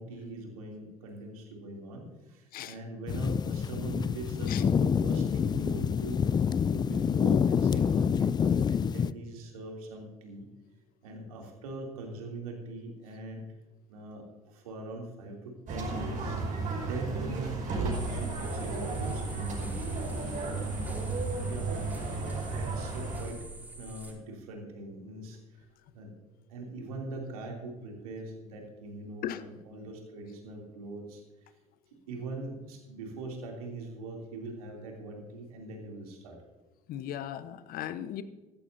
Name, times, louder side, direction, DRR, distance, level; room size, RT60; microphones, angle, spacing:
voice 1, 0.0-6.2 6.7-10.4 11.0-13.4 13.9-16.4 16.8-19.8 20.5-21.8 22.3-23.4 23.8-25.4 25.9-26.1 26.5-31.5 32.1-36.4, right 2 dB, 75° right, 1 dB, 3.1 m, -41 dB
sound 1, 3.1-9.1, left 7 dB, 20° left, 0.4 m, -27 dB
sound 2, 15.7-23.2, right 3 dB, 45° right, 5.1 m, -33 dB
sound 3, 17.9-24.1, right 2 dB, 10° right, 5.3 m, -45 dB
voice 2, 36.9-38.2, left 11 dB, 50° left, 13 dB, 1.0 m, -37 dB
16.0 x 15.0 x 2.8 m, 1.1 s
figure-of-eight pair, 60°, 19 cm